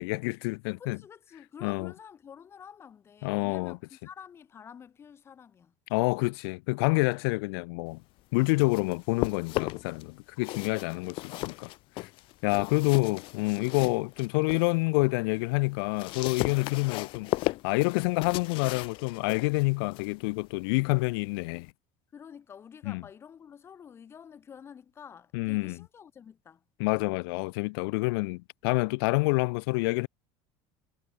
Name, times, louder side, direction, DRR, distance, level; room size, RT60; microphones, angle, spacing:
voice 1, 0.0-1.0 1.6-1.9 3.2-3.8 5.9-8.0 8.3-11.7 12.0-12.1 12.4-17.3 17.6-21.7 22.9-23.0 25.3-25.8 26.8-30.1, left 27 dB, 80° left, 0.7 m, -28 dB
voice 2, 0.7-5.7 10.5-11.2 22.1-26.6, left 7 dB, 20° left, 2.3 m, -49 dB
sound 1, 8.2-10.0 10.4-14.7 15.1-21.7, left 20 dB, 45° left, 0.8 m, -36 dB
cardioid pair, 180°, 13 cm